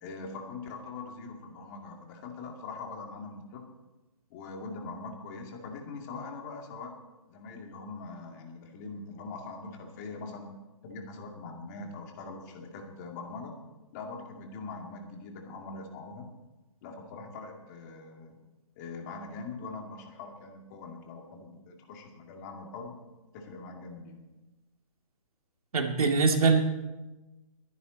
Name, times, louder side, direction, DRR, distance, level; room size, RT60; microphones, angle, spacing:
voice 1, 0.0-3.6 4.3-6.9 7.3-10.5 10.8-13.5 13.9-16.3 16.8-18.4 18.8-23.0 23.3-24.2, left 3 dB, 30° left, 2 dB, 2.3 m, -42 dB
voice 2, 25.7-26.6, right 4 dB, 75° right, 3 dB, 2.2 m, -23 dB
22.5 x 9.8 x 4.0 m, 1.1 s
hypercardioid pair, 155°, 19 cm